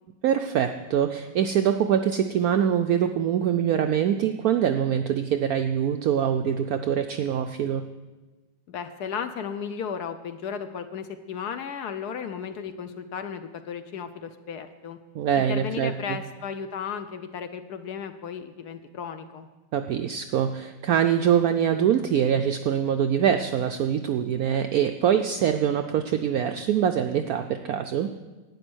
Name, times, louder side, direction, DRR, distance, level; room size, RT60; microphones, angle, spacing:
voice 1, 0.2-7.8 15.1-16.2 19.7-28.1, right 9 dB, 75° right, 7 dB, 0.8 m, -24 dB
voice 2, 8.7-15.0 15.3-19.5, left 7 dB, 70° left, 9 dB, 1.0 m, -35 dB
12.0 x 9.3 x 6.2 m, 1.2 s
omnidirectional pair, 2.1 m